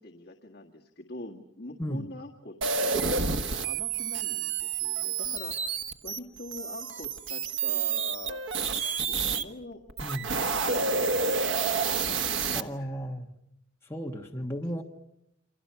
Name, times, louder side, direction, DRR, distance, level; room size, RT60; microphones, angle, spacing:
voice 1, 0.0-3.1 3.6-9.8 10.4-13.1 14.3-14.5, left 2 dB, 50° left, 1.8 m, -44 dB
sound 1, 2.6-9.4 9.9-12.6, right 5 dB, 80° right, 1.4 m, -29 dB
voice 2, 10.0-10.4 12.5-13.3 13.9-14.8, equal, 15° left, 1.3 m, -34 dB
29.0 x 26.5 x 5.8 m
head